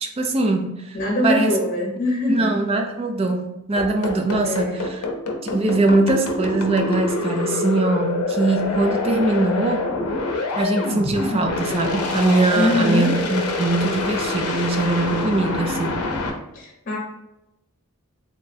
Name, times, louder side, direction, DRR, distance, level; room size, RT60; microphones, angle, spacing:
voice 1, 0.0-1.0 1.2-1.6 2.3-5.0 5.4-9.9 10.6-16.0, right 2 dB, 25° right, 5 dB, 0.3 m, -22 dB
voice 2, 0.9-2.5 4.4-4.8 12.5-13.1 16.5-17.0, left 1 dB, 35° left, -1 dB, 0.8 m, -22 dB
sound 1, 3.8-16.3, left 3 dB, 85° left, 0.6 m, -25 dB
3.6 x 2.2 x 4.0 m, 0.89 s
head